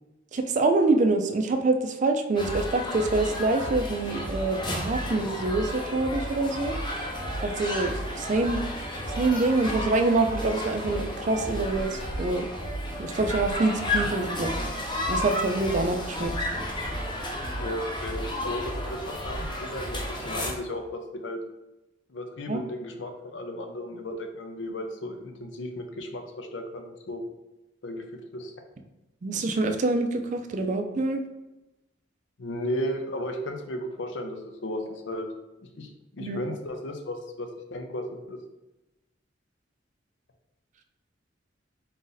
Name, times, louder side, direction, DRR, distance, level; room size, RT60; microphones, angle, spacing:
voice 1, 0.3-6.7 7.4-8.6 9.2-12.5 13.0-14.5 14.9-16.3 22.5-22.6 29.2-31.2 36.2-36.4, right 2 dB, 40° right, 6 dB, 0.4 m, -26 dB
sound 1, 2.4-20.5, left 1 dB, 25° left, 0.7 m, -32 dB
voice 2, 17.6-21.4 22.1-27.2 27.8-28.5 32.4-35.3 35.8-38.4, left 1 dB, 80° left, 5 dB, 0.6 m, -35 dB
4.0 x 2.6 x 3.9 m, 0.99 s
head